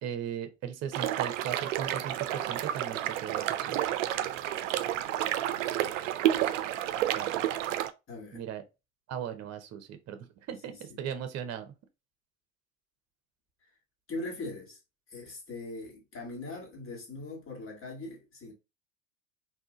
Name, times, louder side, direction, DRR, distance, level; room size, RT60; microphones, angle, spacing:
voice 1, 0.0-3.8 7.1-7.5 8.3-8.6 9.1-11.7, right 9 dB, 40° right, 0.9 m, -38 dB
sound 1, 0.9-7.9, right 12 dB, 65° right, 0.6 m, -30 dB
voice 2, 5.5-6.0 8.1-8.4 10.7-11.0 14.1-14.8 15.1-18.5, left 2 dB, 30° left, 1.9 m, -41 dB
3.7 x 2.8 x 3.8 m
figure-of-eight pair, 65°, 40 cm